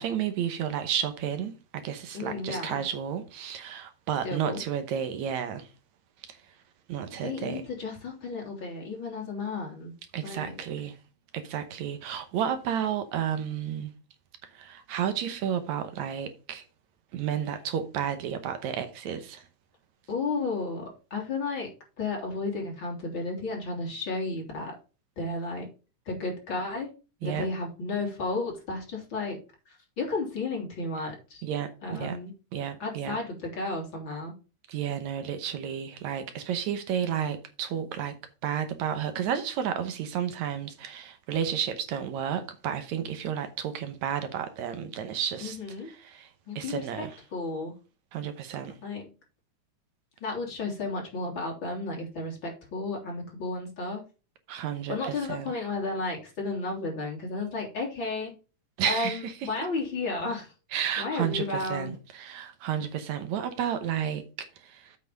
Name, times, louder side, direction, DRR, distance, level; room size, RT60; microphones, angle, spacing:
voice 1, 0.0-5.7 6.3-6.4 6.9-7.6 10.1-11.0 11.3-13.9 14.5-16.6 17.1-19.4 27.2-27.5 31.4-32.2 32.5-33.2 34.7-38.1 38.4-45.6 46.0-46.3 46.6-47.1 48.1-48.7 54.5-55.5 58.8-59.3 60.7-65.0, right 9 dB, 75° right, 2.3 m, -32 dB
voice 2, 2.1-2.8 4.2-4.6 7.2-9.9 10.2-10.6 20.1-21.7 22.0-24.8 25.2-25.7 26.1-26.9 27.2-29.4 29.7-31.4 31.8-32.3 32.8-34.3 45.4-45.9 46.5-47.7 48.8-49.1 50.2-54.0 54.9-58.3 58.8-60.5 61.0-62.0, left 3 dB, 40° left, 3.7 m, -33 dB
8.1 x 5.9 x 5.2 m
omnidirectional pair, 3.4 m